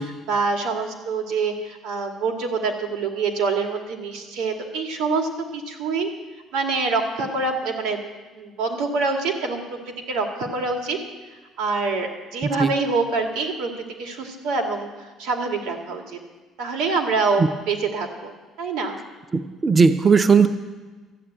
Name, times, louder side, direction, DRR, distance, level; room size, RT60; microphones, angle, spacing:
voice 1, 0.0-6.1 6.5-8.0 8.3-11.0 11.6-16.2 16.6-18.3 18.6-19.0, right 4 dB, 85° right, 3 dB, 2.4 m, -26 dB
voice 2, 19.5-20.5, right 5 dB, 20° right, 9 dB, 0.5 m, -16 dB
13.5 x 9.0 x 8.7 m, 1.3 s
cardioid pair, 175°, 0 cm